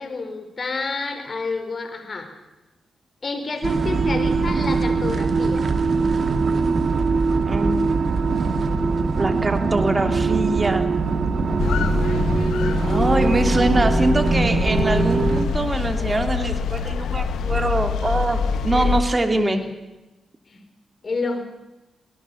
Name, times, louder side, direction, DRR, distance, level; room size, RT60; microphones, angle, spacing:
voice 1, 0.0-2.3 3.2-5.7 18.7-18.9 19.3-19.7 20.5-20.6 21.0-21.4, left 3 dB, 50° left, 7 dB, 4.8 m, -29 dB
sound 1, 3.6-15.5, right 4 dB, 55° right, 2.2 m, -22 dB
voice 2, 7.4-7.8 9.2-10.9 12.9-19.6, right 2 dB, 30° right, 7 dB, 2.8 m, -23 dB
sound 2, 11.6-19.0, left 5 dB, 75° left, 1.3 m, -24 dB
24.0 x 18.5 x 7.1 m, 1.1 s
hypercardioid pair, 40°, 0 cm